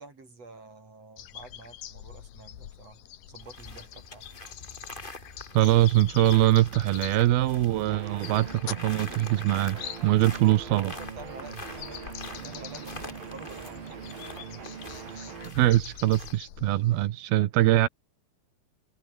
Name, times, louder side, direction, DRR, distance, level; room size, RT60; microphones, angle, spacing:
voice 1, 0.0-4.3 10.7-14.2, right 3 dB, 40° right, 8.4 m, -48 dB
sound 1, 1.2-17.1, left 12 dB, 65° left, 3.0 m, -45 dB
sound 2, 3.4-16.4, left 2 dB, 15° left, 2.9 m, -45 dB
voice 2, 5.5-10.9 15.1-17.9, right 14 dB, 85° right, 3.1 m, -23 dB
sound 3, 7.9-15.5, right 6 dB, 65° right, 5.6 m, -42 dB
omnidirectional pair, 4.4 m